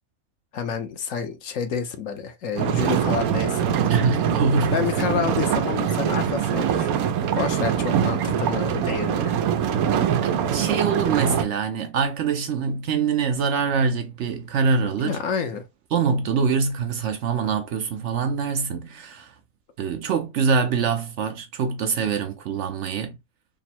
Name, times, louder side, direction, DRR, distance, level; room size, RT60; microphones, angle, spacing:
voice 1, 0.5-3.7 4.7-6.9 7.4-9.3 15.0-15.6, left 6 dB, 70° left, 1.1 m, -28 dB
sound 1, 2.6-11.4, right 8 dB, 90° right, 1.1 m, -23 dB
voice 2, 3.9-4.8 10.2-15.2 15.9-19.3 19.8-23.2, right 5 dB, 65° right, 0.8 m, -24 dB
3.6 x 2.0 x 4.2 m
omnidirectional pair, 1.5 m